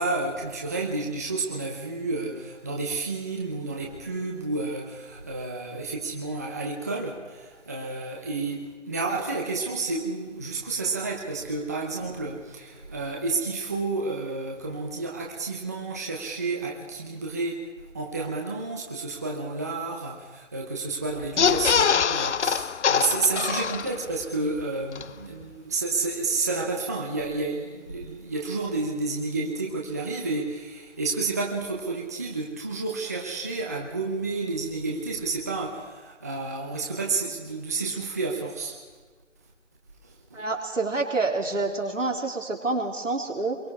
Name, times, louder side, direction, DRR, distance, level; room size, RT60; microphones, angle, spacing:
voice 1, 0.0-17.6 17.9-38.8 40.3-40.4, right 3 dB, 15° right, 0 dB, 0.8 m, -30 dB
sound 1, 21.2-24.2 24.6-24.7 24.9-25.0, left 7 dB, 65° left, 0.5 m, -23 dB
voice 2, 40.3-43.6, right 3 dB, 75° right, 1 dB, 3.9 m, -27 dB
26.5 x 22.5 x 4.7 m, 1.4 s
figure-of-eight pair, 160°, 38 cm